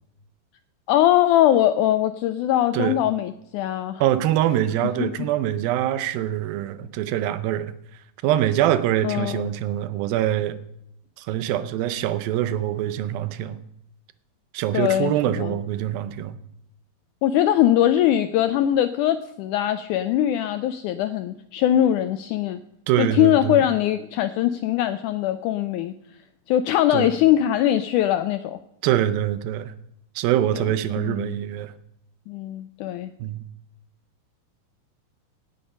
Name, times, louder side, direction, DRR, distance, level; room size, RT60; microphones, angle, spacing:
voice 1, 0.9-4.0 5.0-5.1 9.0-9.5 14.7-15.6 17.2-22.6 23.0-25.9 26.5-28.6 31.0-31.4 32.3-33.1, left 12 dB, 85° left, 11 dB, 1.8 m, -21 dB
voice 2, 4.0-7.7 8.2-10.6 11.2-13.6 14.5-16.4 22.9-23.6 26.9-27.1 28.8-29.7 30.2-31.7 33.2-33.5, right 12 dB, 90° right, 12 dB, 2.6 m, -24 dB
18.0 x 6.8 x 5.3 m, 0.76 s
omnidirectional pair, 4.1 m